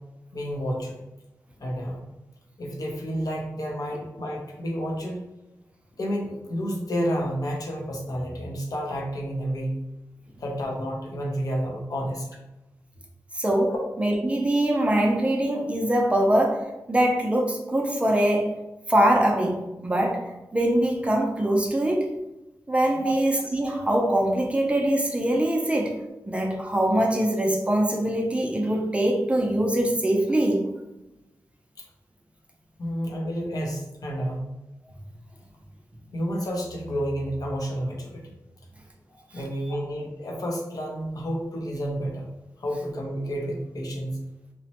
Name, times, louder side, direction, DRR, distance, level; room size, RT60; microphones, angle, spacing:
voice 1, 0.3-0.9 1.6-2.1 2.6-5.2 6.0-9.8 10.4-12.3 13.7-13.8 23.0-23.2 32.8-34.5 36.1-38.3 39.1-42.3 42.6-44.2, equal, 65° left, 0 dB, 0.6 m, -30 dB
voice 2, 13.3-18.5 18.9-22.1 22.7-26.0 26.3-30.7, right 1 dB, 15° right, 0 dB, 0.4 m, -23 dB
2.9 x 2.1 x 2.8 m, 0.97 s
wide cardioid pair, 135°, 7 cm